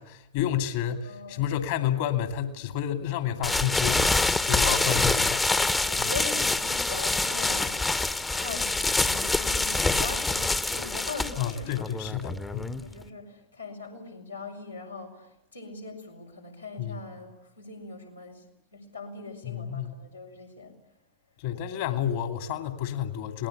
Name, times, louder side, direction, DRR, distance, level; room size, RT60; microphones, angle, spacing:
voice 1, 0.0-5.5 6.0-6.1 11.4-12.7 16.8-17.0 19.4-20.0 21.4-23.5, left 10 dB, 50° left, 2.5 m, -30 dB
voice 2, 1.0-1.5 5.5-8.0 8.3-11.9 12.5-18.4 18.7-20.8, left 3 dB, 90° left, 5.5 m, -41 dB
sound 1, 3.4-13.0, left 2 dB, 10° left, 1.1 m, -26 dB
27.0 x 19.5 x 8.5 m
figure-of-eight pair, 90°, 0 cm